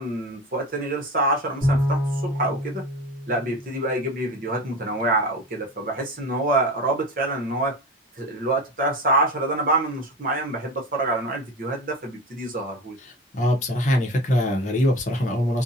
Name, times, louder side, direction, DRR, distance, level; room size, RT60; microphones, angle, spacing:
voice 1, 0.0-2.8 3.3-7.8 8.2-13.0, right 2 dB, 50° right, 0.8 m, -26 dB
Bowed string instrument, 1.6-4.2, equal, 25° right, 1.1 m, -26 dB
voice 2, 13.3-15.6, left 1 dB, 40° left, 0.7 m, -22 dB
2.6 x 2.1 x 2.7 m
head